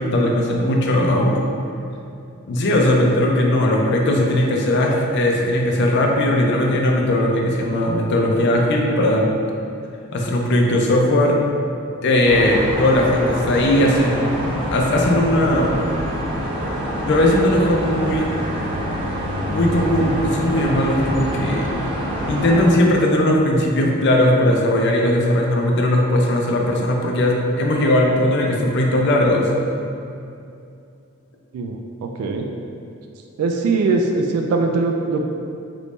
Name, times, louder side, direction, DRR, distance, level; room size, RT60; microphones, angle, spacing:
voice 1, 0.0-1.4 2.5-9.2 10.1-11.4 12.0-14.4 14.7-15.8 17.1-18.3 19.5-21.7 22.3-29.5, left 1 dB, 55° left, 0 dB, 0.4 m, -18 dB
sound 1, 12.2-22.7, equal, 25° right, 0.6 m, -26 dB
voice 2, 31.5-32.5 33.4-35.2, right 3 dB, 90° right, 6 dB, 0.3 m, -21 dB
3.0 x 2.6 x 3.5 m, 2.5 s
head